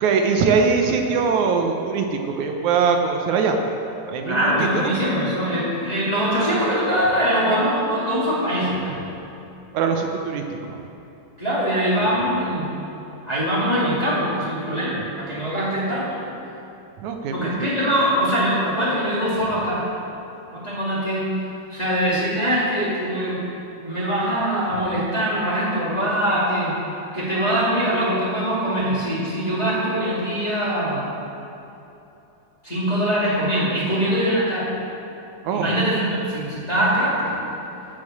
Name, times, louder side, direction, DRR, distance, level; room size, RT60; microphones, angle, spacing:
voice 1, 0.0-3.6 4.1-4.9 9.7-10.8 17.0-17.7 35.4-35.7, right 5 dB, 75° right, 4 dB, 2.1 m, -22 dB
voice 2, 4.2-8.9 11.4-12.7 13.2-16.2 17.3-19.8 20.5-21.3 21.7-23.4 23.8-26.7 27.1-31.0 32.6-34.7 35.5-37.4, equal, 15° left, -8 dB, 2.0 m, -22 dB
10.5 x 6.9 x 7.7 m, 2.9 s
omnidirectional pair, 3.5 m